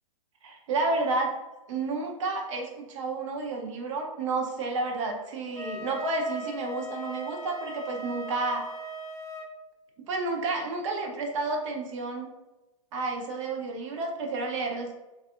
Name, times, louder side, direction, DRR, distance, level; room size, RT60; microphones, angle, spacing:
voice 1, 0.4-1.3 1.7-8.6 10.1-12.3 12.9-15.0, right 3 dB, 60° right, 2 dB, 0.6 m, -31 dB
Wind instrument woodwind instrument, 5.5-9.5, right 1 dB, 15° left, 0.4 m, -39 dB
2.6 x 2.3 x 2.4 m, 1.1 s
hypercardioid pair, 120°, 18 cm